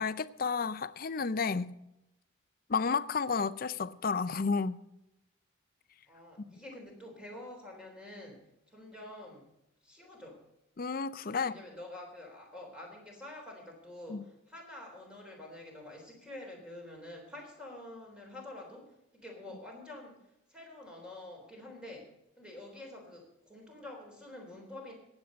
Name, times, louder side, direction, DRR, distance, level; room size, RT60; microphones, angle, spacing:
voice 1, 0.0-1.8 2.7-4.8 10.8-11.5 14.1-14.2, left 5 dB, 45° left, 0.5 m, -31 dB
voice 2, 6.1-9.5 9.8-10.5 11.3-20.2 20.5-24.9, left 1 dB, 5° right, 3.6 m, -48 dB
18.0 x 8.1 x 5.1 m
head